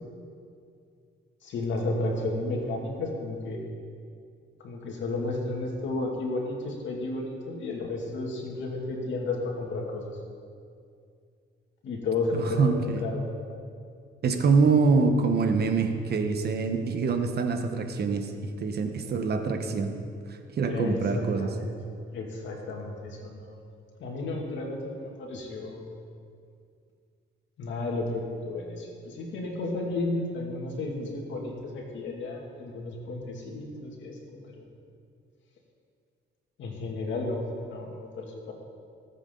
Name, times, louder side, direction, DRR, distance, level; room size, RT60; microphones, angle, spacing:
voice 1, 1.4-3.6 4.6-10.1 11.8-12.7 13.0-13.2 20.7-21.7 22.1-23.6 24.0-25.8 27.6-34.6 36.6-38.5, left 2 dB, 70° left, 0 dB, 2.6 m, -32 dB
voice 2, 12.3-13.0 14.2-19.9 20.6-21.5, right 4 dB, 55° right, 6 dB, 1.2 m, -25 dB
20.0 x 8.2 x 4.0 m, 2.3 s
cardioid pair, 90°, 20 cm